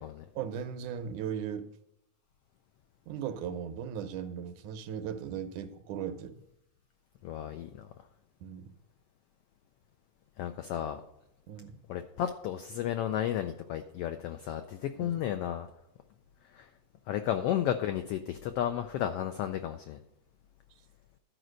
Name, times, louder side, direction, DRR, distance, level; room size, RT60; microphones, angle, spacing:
voice 1, 0.4-1.7 3.1-6.4 8.4-8.7 11.5-11.7 15.0-15.2, right 8 dB, 85° right, 8 dB, 2.3 m, -37 dB
voice 2, 7.2-7.9 10.4-11.0 11.9-15.7 16.5-16.7 17.1-20.0, left 10 dB, 85° left, 8 dB, 1.3 m, -33 dB
12.0 x 5.1 x 6.4 m, 0.85 s
omnidirectional pair, 3.4 m